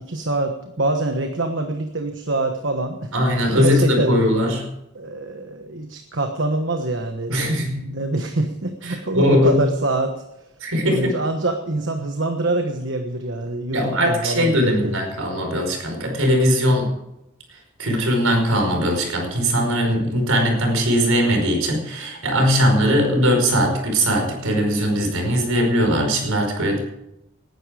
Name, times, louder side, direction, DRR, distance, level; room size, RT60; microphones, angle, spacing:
voice 1, 0.0-3.1 3.5-4.1 4.9-7.4 7.7-10.2 10.8-15.0, right 2 dB, 60° right, 5 dB, 1.3 m, -25 dB
voice 2, 3.1-4.7 7.3-7.8 8.9-9.6 10.6-11.1 13.7-16.9 17.8-26.8, equal, 85° right, 3 dB, 5.1 m, -20 dB
19.0 x 11.0 x 5.0 m, 0.87 s
head